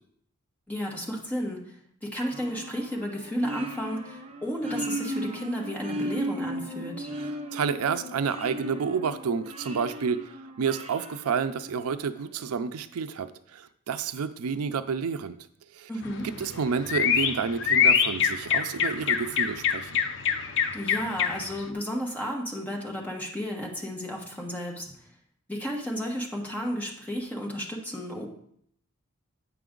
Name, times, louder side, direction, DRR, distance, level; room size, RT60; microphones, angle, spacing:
voice 1, 0.7-7.1 15.9-16.3 20.7-25.1 25.5-28.3, equal, 10° left, -2 dB, 1.3 m, -33 dB
sound 1, 2.3-12.1, right 1 dB, 30° right, 0.8 m, -37 dB
voice 2, 7.5-15.4 15.7-15.9 16.4-19.9, right 6 dB, 80° right, 11 dB, 0.4 m, -30 dB
sound 2, 16.0-21.6, left 7 dB, 60° left, 0.6 m, -25 dB
8.5 x 5.9 x 3.8 m, 0.67 s
head